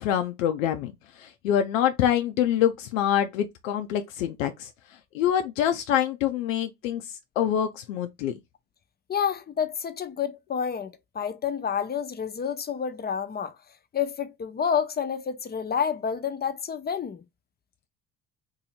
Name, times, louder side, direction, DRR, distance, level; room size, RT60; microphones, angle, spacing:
voice 1, 0.0-4.7 5.1-8.4, left 10 dB, 80° left, 0.5 m, -26 dB
voice 2, 9.1-13.5 13.9-17.2, left 7 dB, 25° left, 0.7 m, -29 dB
2.7 x 2.7 x 4.2 m
hypercardioid pair, 65°, 39 cm